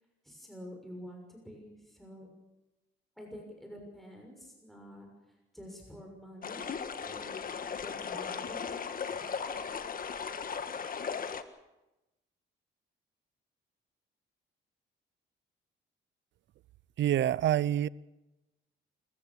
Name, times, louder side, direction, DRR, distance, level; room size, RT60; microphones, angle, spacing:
voice 1, 0.2-2.3 3.2-7.3 7.8-9.3, equal, ahead, 6.4 m, -48 dB
sound 1, 6.4-11.4, left 6 dB, 45° left, 1.6 m, -37 dB
voice 2, 17.0-17.9, right 11 dB, 65° right, 0.6 m, -26 dB
26.5 x 15.0 x 7.2 m
cardioid pair, 90°, 20 cm